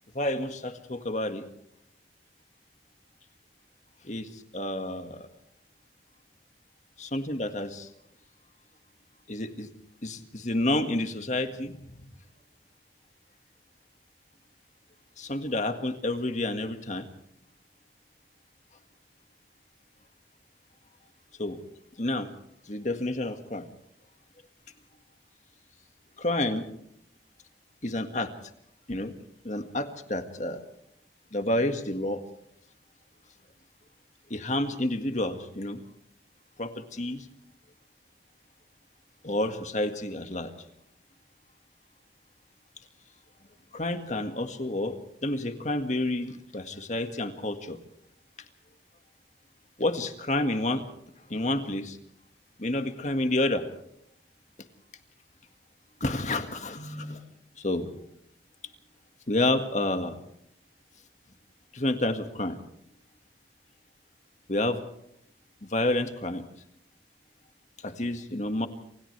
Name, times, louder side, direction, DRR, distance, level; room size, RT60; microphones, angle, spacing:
voice 1, 0.1-1.4 4.0-5.3 7.1-7.9 9.3-9.7 10.0-12.1 15.2-17.1 21.4-21.6 22.0-22.3 22.7-23.7 26.2-26.7 27.8-28.3 28.9-29.1 29.4-30.6 31.3-32.2 34.3-35.8 36.6-37.3 39.2-40.5 43.7-45.0 45.2-47.8 49.8-50.8 51.3-52.0 52.6-53.7 56.0-57.2 57.6-57.9 59.3-60.2 61.7-62.6 64.5-64.8 65.6-66.4 67.8-68.7, left 1 dB, 40° left, 7 dB, 1.9 m, -29 dB
28.0 x 28.0 x 3.4 m, 0.73 s
head